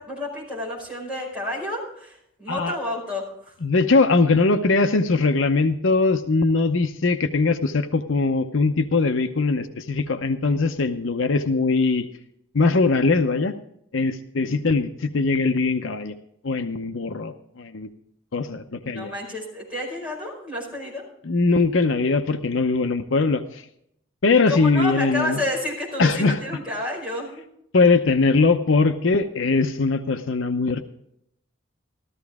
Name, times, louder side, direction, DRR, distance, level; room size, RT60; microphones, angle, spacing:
voice 1, 0.0-3.5 18.9-21.0 24.5-27.4, left 1 dB, 5° right, -4 dB, 5.1 m, -30 dB
voice 2, 3.6-12.1 12.5-13.5 13.9-16.1 16.4-17.9 18.3-19.1 21.2-23.6 24.2-25.4 26.0-26.4 27.7-30.8, left 3 dB, 70° left, 8 dB, 0.7 m, -21 dB
14.0 x 14.0 x 3.6 m, 0.73 s
head